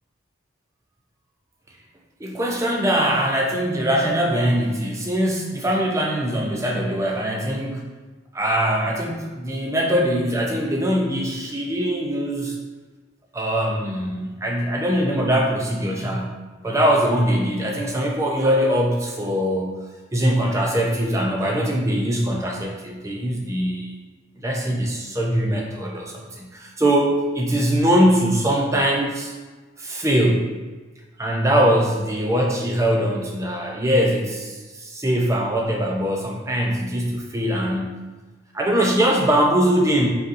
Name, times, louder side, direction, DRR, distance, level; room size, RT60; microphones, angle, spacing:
voice 1, 2.2-7.9 8.3-12.6 13.3-16.4 16.6-19.8 20.1-23.9 24.4-29.3 29.8-30.5 31.2-38.0 38.5-40.1, equal, 15° right, -1 dB, 0.4 m, -22 dB
4.1 x 3.9 x 2.5 m, 1.3 s
head